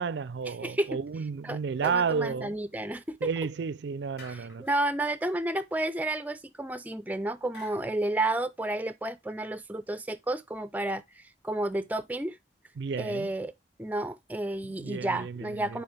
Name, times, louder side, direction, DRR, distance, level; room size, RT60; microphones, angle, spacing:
voice 1, 0.0-2.6 3.2-4.6 12.8-13.3 14.6-15.8, right 5 dB, 80° right, 0.4 m, -32 dB
voice 2, 0.6-1.0 1.4-3.2 4.3-12.4 13.0-13.5 13.8-15.8, right 1 dB, 10° right, 0.3 m, -31 dB
sound 1, 1.8-2.5 4.2-4.8 7.5-8.1, left 3 dB, 75° left, 3.3 m, -50 dB
6.9 x 4.2 x 3.3 m
head